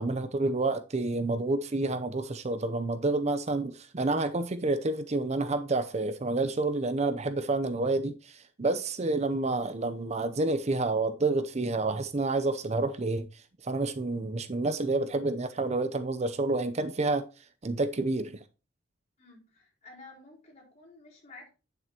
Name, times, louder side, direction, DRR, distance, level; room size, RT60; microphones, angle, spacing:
voice 1, 0.0-17.2 17.6-18.4, right 2 dB, 35° right, 0.6 m, -29 dB
voice 2, 19.2-21.5, left 3 dB, 35° left, 4.8 m, -52 dB
9.2 x 7.7 x 2.9 m
head